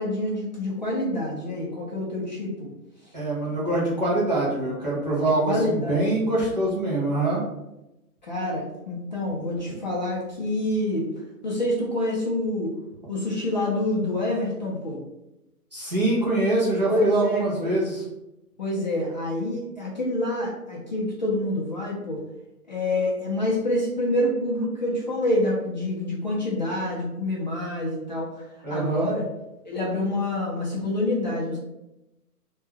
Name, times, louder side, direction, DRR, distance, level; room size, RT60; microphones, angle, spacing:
voice 1, 0.0-2.7 5.4-6.1 8.2-11.0 11.4-12.7 13.1-15.0 16.9-17.7 18.6-22.2 22.7-28.3 28.7-29.3 29.6-31.6, left 1 dB, 30° left, -6 dB, 0.4 m, -27 dB
voice 2, 3.1-7.4 15.7-18.0 28.6-29.1, right 2 dB, 30° right, -6 dB, 0.4 m, -24 dB
2.2 x 2.2 x 3.1 m, 0.92 s
hypercardioid pair, 150°, 46 cm